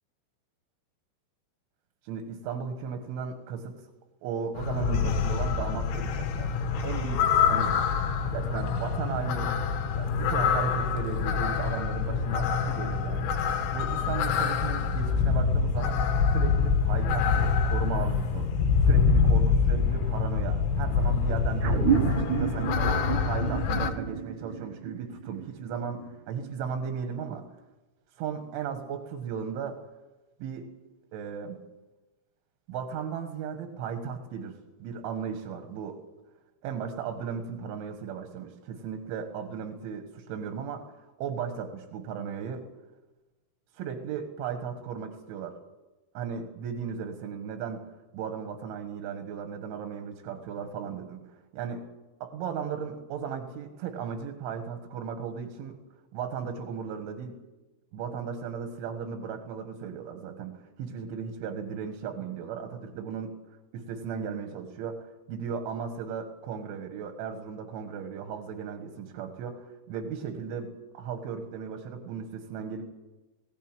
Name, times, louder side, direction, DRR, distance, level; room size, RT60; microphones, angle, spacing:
voice 1, 2.0-3.8 4.2-6.5 6.8-7.8 8.3-9.6 9.9-13.4 13.7-16.0 16.3-18.6 18.8-27.4 28.2-29.8 30.4-30.7 31.1-31.6 32.7-36.0 36.6-40.8 41.2-42.7 43.8-45.6 46.2-47.8 48.1-51.9 52.2-55.8 56.1-57.4 57.9-63.3 63.7-72.8, right 7 dB, 90° right, 6 dB, 4.1 m, -36 dB
sound 1, 4.6-23.9, left 5 dB, 90° left, 4.1 m, -26 dB
sound 2, 21.6-26.5, right 8 dB, 60° right, 2.2 m, -30 dB
21.0 x 17.5 x 9.1 m, 1.1 s
omnidirectional pair, 5.3 m